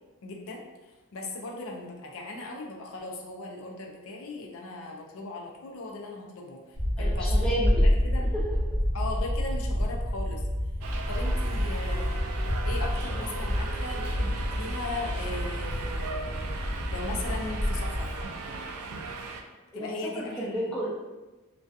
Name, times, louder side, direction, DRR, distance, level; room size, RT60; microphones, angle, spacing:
voice 1, 0.2-0.6 1.1-6.6 7.0-7.3 7.8-8.4 8.9-10.4 11.1-12.2 12.6-16.4 16.9-18.2 19.7-20.7, left 2 dB, 65° left, 0 dB, 0.4 m, -38 dB
sound 1, 6.7-18.3, equal, 40° left, 1.1 m, -28 dB
voice 2, 7.0-7.8 8.3-8.6 19.7-21.0, equal, 5° left, -6 dB, 0.5 m, -32 dB
Subway metro underground, 10.8-19.4, right 3 dB, 80° right, 0.3 m, -38 dB
2.5 x 2.3 x 2.3 m, 1.1 s
head